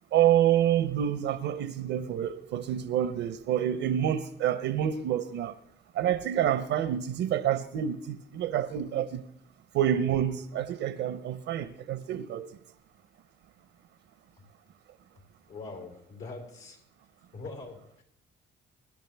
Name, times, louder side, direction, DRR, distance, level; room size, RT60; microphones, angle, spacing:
voice 1, 0.1-5.5 6.0-9.2 9.7-12.5, right 10 dB, 85° right, 0.7 m, -27 dB
voice 2, 15.5-16.8 17.3-18.0, left 3 dB, 80° left, 4.0 m, -42 dB
21.5 x 11.5 x 3.4 m
cardioid pair, 90°, 20 cm